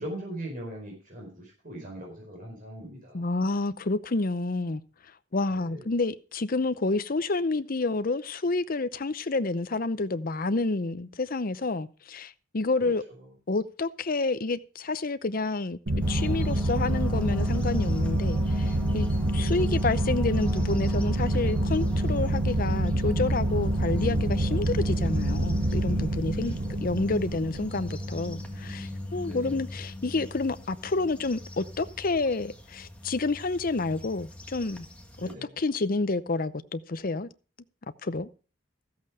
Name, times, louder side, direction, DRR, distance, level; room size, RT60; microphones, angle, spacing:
voice 1, 0.0-3.2 5.5-5.8 12.8-13.3 19.4-19.7 26.6-26.9 27.3-27.6 29.2-29.6 35.2-35.6, right 1 dB, 45° right, 4.8 m, -41 dB
voice 2, 3.1-4.8 5.3-13.0 13.5-15.8 16.1-19.1 19.3-34.9 35.2-35.3 35.6-37.3 38.0-38.3, left 3 dB, 45° left, 0.7 m, -29 dB
sound 1, 15.9-29.1, right 1 dB, 80° right, 1.6 m, -27 dB
sound 2, 16.0-35.3, equal, 5° left, 1.6 m, -41 dB
14.0 x 8.1 x 4.9 m
head